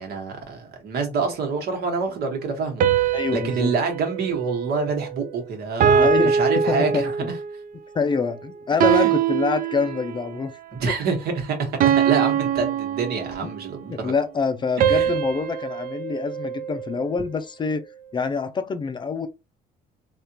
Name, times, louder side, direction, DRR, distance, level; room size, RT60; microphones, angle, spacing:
voice 1, 0.0-7.1 8.9-9.1 10.8-11.7 12.0-14.1 14.9-15.1, right 4 dB, 70° right, 1.3 m, -27 dB
sound 1, 2.8-5.3 5.8-7.6 8.8-10.3 11.8-13.7 14.8-17.2, right 8 dB, 55° right, 0.4 m, -23 dB
voice 2, 3.1-3.7 6.0-6.3 6.7-7.1 7.9-10.5 13.4-13.5 13.9-17.8 18.1-19.3, left 5 dB, 25° left, 0.4 m, -25 dB
3.5 x 2.4 x 2.7 m
cardioid pair, 110°, 17 cm